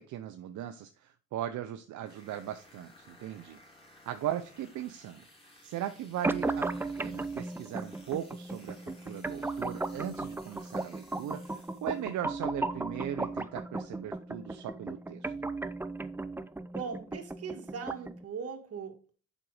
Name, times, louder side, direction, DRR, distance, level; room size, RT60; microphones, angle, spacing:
voice 1, 0.0-3.6 4.1-5.3 5.6-6.7 7.0-15.3, right 11 dB, 75° right, 0.7 m, -38 dB
sound 1, 2.0-12.2, left 1 dB, 20° left, 3.3 m, -58 dB
sound 2, 6.2-18.2, right 2 dB, 5° right, 0.5 m, -36 dB
voice 2, 16.7-19.1, right 6 dB, 50° right, 1.8 m, -39 dB
7.5 x 5.3 x 4.8 m
cardioid pair, 90°, 30 cm